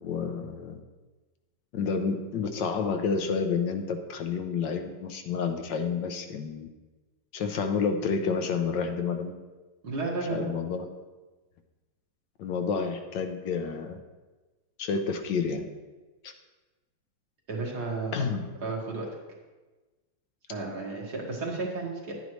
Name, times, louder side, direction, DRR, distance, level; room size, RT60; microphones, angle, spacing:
voice 1, 0.0-0.8 1.7-6.7 7.3-9.3 10.3-10.9 12.4-14.0 14.8-15.7 16.2-16.3 18.1-18.5, left 5 dB, 75° left, 6 dB, 1.3 m, -29 dB
voice 2, 9.8-10.5 17.5-18.1 18.6-19.1 20.5-22.1, right 3 dB, 55° right, -2 dB, 2.1 m, -32 dB
10.5 x 9.2 x 3.2 m, 1.2 s
omnidirectional pair, 2.1 m